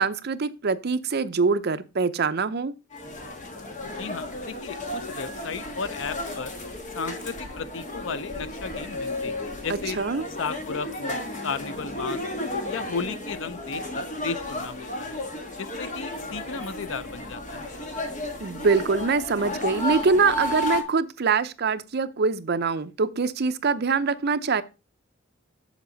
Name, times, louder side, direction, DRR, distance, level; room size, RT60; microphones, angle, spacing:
voice 1, 0.0-2.7 9.7-10.2 18.4-24.6, right 4 dB, 55° right, 0.6 m, -24 dB
sound 1, 2.9-20.8, left 2 dB, 40° left, 1.4 m, -33 dB
voice 2, 3.9-6.6 6.9-10.0 10.4-12.2 12.7-15.2 15.6-17.7, left 5 dB, 75° left, 0.6 m, -35 dB
7.4 x 7.3 x 3.9 m
head